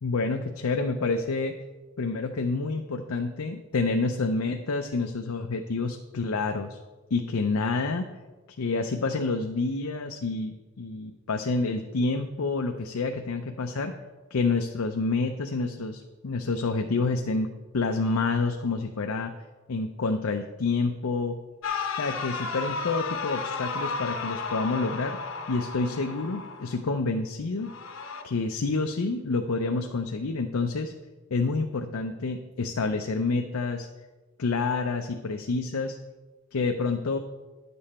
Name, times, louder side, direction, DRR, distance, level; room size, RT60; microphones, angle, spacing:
voice 1, 0.0-1.6 2.0-6.8 7.1-8.1 8.6-13.9 14.3-19.3 19.7-21.4 22.0-25.2 25.5-27.7 28.2-30.9 31.3-33.9 34.4-36.0 36.5-37.2, left 3 dB, 85° left, 4 dB, 0.6 m, -28 dB
sound 1, 21.6-26.8 27.6-28.2, left 4 dB, 65° left, 0.9 m, -33 dB
10.5 x 7.0 x 4.3 m, 1.2 s
head